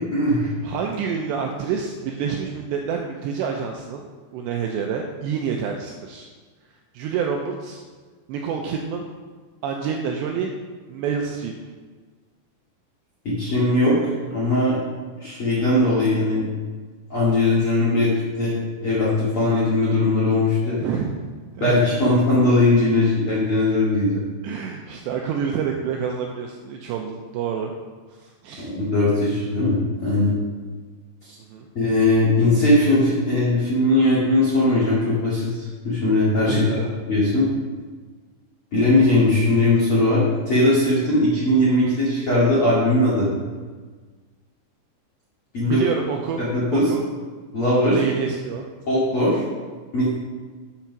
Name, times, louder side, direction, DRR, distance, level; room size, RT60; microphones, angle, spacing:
voice 1, 0.1-0.5 13.2-14.8 15.2-16.5 17.1-20.8 21.6-24.2 28.6-30.3 31.3-31.4 31.7-36.6 37.1-37.5 38.7-43.3 45.5-45.8 46.4-46.9 47.5-48.0 48.9-49.4 49.9-50.2, left 1 dB, 50° left, -8 dB, 1.7 m, -19 dB
voice 2, 0.6-4.0 4.3-6.3 6.9-7.8 8.3-9.1 9.6-10.5 10.9-11.5 20.8-21.8 24.4-27.7 28.1-28.7 31.5-31.7 36.4-36.9 45.7-46.4 46.7-47.0 47.9-48.7, right 6 dB, 85° right, 2 dB, 2.5 m, -27 dB
8.4 x 5.8 x 5.9 m, 1.4 s
omnidirectional pair, 5.6 m